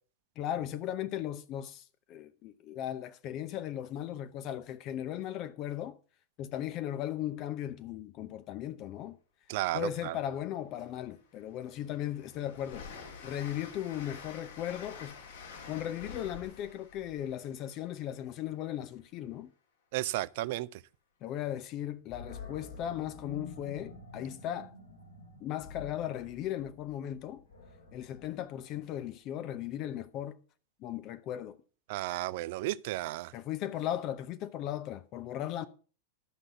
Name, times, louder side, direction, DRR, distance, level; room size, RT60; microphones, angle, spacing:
voice 1, 0.4-6.0 6.4-9.2 9.7-12.9 13.2-15.2 15.7-19.5 21.2-24.7 25.4-27.4 27.9-30.4 30.8-31.6 33.3-35.6, left 11 dB, 40° left, 0.7 m, -37 dB
voice 2, 9.5-10.1 19.9-20.8 31.9-33.3, right 17 dB, 50° right, 0.5 m, -33 dB
Train, 10.6-10.7 11.1-18.8, left 5 dB, 60° left, 3.0 m, -49 dB
Animal, 22.1-29.2, left 4 dB, 80° left, 6.2 m, -49 dB
12.0 x 6.3 x 7.3 m
figure-of-eight pair, 90°, 0 cm